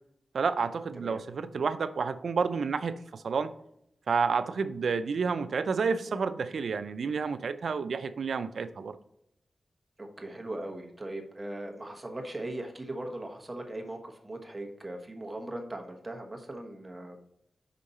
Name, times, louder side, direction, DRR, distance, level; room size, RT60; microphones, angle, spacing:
voice 1, 0.3-3.5 4.1-9.0, right 5 dB, 75° right, 12 dB, 0.4 m, -30 dB
voice 2, 10.0-17.3, right 1 dB, 20° right, 2 dB, 1.2 m, -39 dB
5.5 x 5.1 x 4.1 m, 0.76 s
wide cardioid pair, 100°, 0 cm